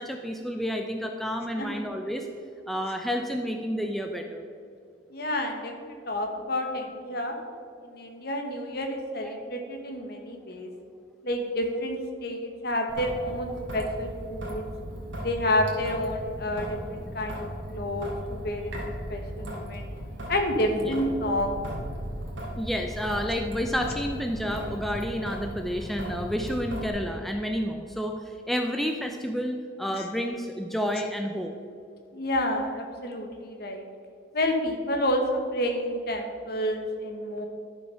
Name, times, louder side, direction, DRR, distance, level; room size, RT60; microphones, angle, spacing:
voice 1, 0.0-2.3 2.7-4.4 9.2-9.3 13.1-13.2 20.7-20.9 22.6-31.5, equal, ahead, 3 dB, 0.4 m, -30 dB
voice 2, 5.1-7.3 7.8-10.7 11.2-14.7 15.2-19.9 20.3-21.6 29.9-30.1 32.1-33.8 34.3-37.5, left 1 dB, 50° left, 3 dB, 1.4 m, -29 dB
Traffic noise roadway noise / Drip / Trickle dribble, 12.9-26.9, equal, 75° right, 2.3 m, -37 dB
11.5 x 6.6 x 5.5 m, 2.5 s
head